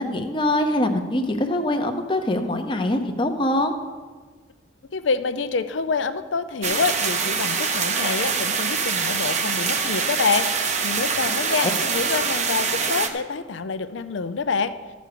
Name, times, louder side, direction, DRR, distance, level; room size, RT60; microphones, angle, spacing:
voice 1, 0.0-3.7 11.6-11.7, left 1 dB, 25° left, 5 dB, 0.8 m, -23 dB
voice 2, 4.9-10.5 10.8-14.8, left 4 dB, 70° left, 11 dB, 0.5 m, -26 dB
sound 1, 6.6-13.1, right 5 dB, 35° right, 0.8 m, -24 dB
14.0 x 5.1 x 6.8 m, 1.4 s
head